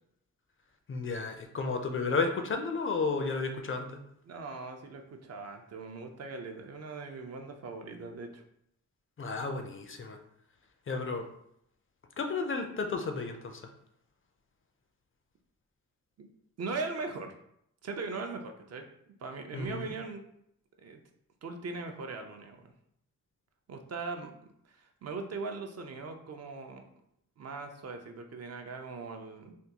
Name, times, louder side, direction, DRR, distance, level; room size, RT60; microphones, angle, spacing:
voice 1, 0.9-3.9 9.2-10.2 10.9-11.2 12.2-13.6 19.5-19.9, left 4 dB, 45° left, 5 dB, 0.4 m, -32 dB
voice 2, 4.2-8.4 16.2-16.3 16.6-17.3 17.8-18.9 19.2-20.2 20.8-21.0 21.4-22.7 23.7-26.9 27.4-29.5, right 4 dB, 55° right, 5 dB, 0.5 m, -40 dB
3.5 x 2.2 x 2.8 m, 0.73 s
wide cardioid pair, 95°, 30 cm